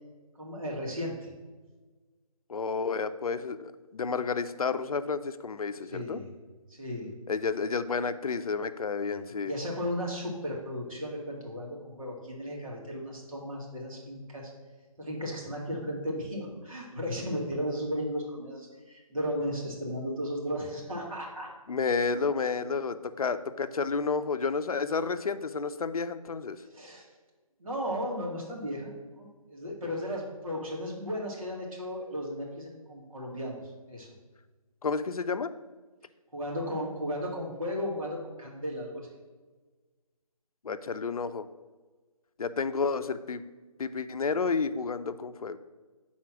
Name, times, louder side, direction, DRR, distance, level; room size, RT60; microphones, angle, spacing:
voice 1, 0.4-1.3 5.8-6.3 6.7-7.1 9.0-14.5 15.0-21.5 26.6-27.0 27.6-33.6 33.9-34.1 36.3-39.1, equal, 65° right, -3 dB, 2.2 m, -35 dB
voice 2, 2.5-6.2 7.3-9.5 21.7-26.6 29.7-29.8 34.8-35.5 40.6-41.4 42.4-43.4 43.8-45.6, left 5 dB, 75° left, 11 dB, 0.5 m, -31 dB
5.8 x 4.2 x 5.9 m, 1.3 s
figure-of-eight pair, 160°, 19 cm